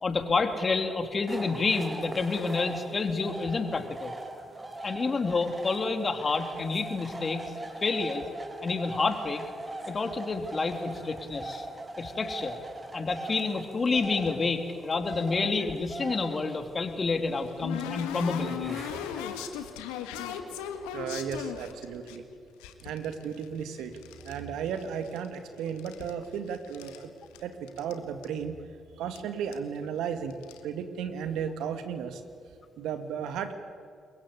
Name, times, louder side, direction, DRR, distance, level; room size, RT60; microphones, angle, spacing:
voice 1, 0.0-4.1 4.8-7.4 7.8-8.3 8.6-9.4 9.9-11.7 12.0-12.6 12.9-18.8, left 4 dB, 40° left, 7 dB, 3.1 m, -29 dB
sound 1, 1.3-19.8, right 2 dB, 25° right, 4.3 m, -41 dB
sound 2, 16.7-22.2 22.6-24.4 24.7-25.4 25.7-27.0 27.3-27.4 27.7-27.9 28.2-28.3 29.2-29.3 29.5-29.8 30.3-30.6, left 8 dB, 80° left, 1.7 m, -38 dB
voice 2, 20.9-22.2 22.8-23.9 24.2-27.1 27.4-28.6 29.0-30.4 30.6-32.2 32.8-33.5, right 7 dB, 70° right, 8 dB, 2.2 m, -34 dB
27.5 x 22.5 x 8.4 m, 2.3 s
hypercardioid pair, 40°, 0 cm